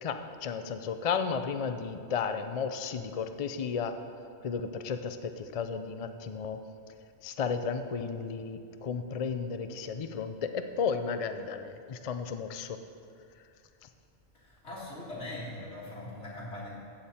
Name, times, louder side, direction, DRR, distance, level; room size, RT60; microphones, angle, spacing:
voice 1, 0.0-4.0 4.4-6.6 7.2-12.8, left 6 dB, 50° left, 8 dB, 0.4 m, -33 dB
voice 2, 14.3-16.8, left 1 dB, 75° left, -6 dB, 2.8 m, -41 dB
14.5 x 7.3 x 4.3 m, 2.4 s
omnidirectional pair, 1.2 m